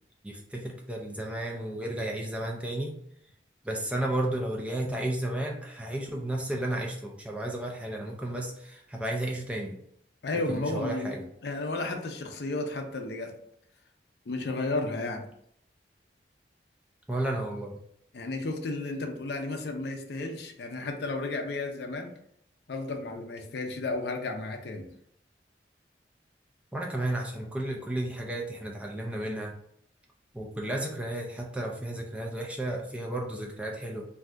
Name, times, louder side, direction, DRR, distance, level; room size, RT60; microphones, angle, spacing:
voice 1, 0.2-2.9 3.6-9.8 10.3-11.2 17.1-17.8 26.7-29.5 30.3-34.1, right 1 dB, 5° right, 0 dB, 0.3 m, -33 dB
voice 2, 10.2-11.2 11.4-13.3 14.3-15.3 18.1-22.1 22.7-24.9, left 2 dB, 65° left, 4 dB, 0.5 m, -33 dB
2.6 x 2.4 x 3.2 m, 0.70 s
head